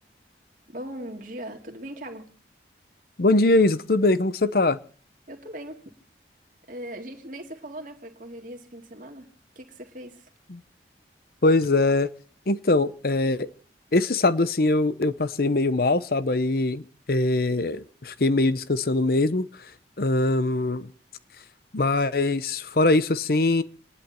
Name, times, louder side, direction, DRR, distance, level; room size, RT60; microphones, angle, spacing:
voice 1, 0.7-2.3 5.3-5.9 6.7-9.3 9.6-10.3, right 1 dB, 45° right, 2.4 m, -39 dB
voice 2, 3.2-4.8 10.5-10.6 11.4-12.1 12.5-13.5 13.9-16.8 17.1-19.5 20.0-20.9 21.7-23.6, left 2 dB, 55° left, 0.8 m, -22 dB
28.5 x 10.5 x 4.4 m
head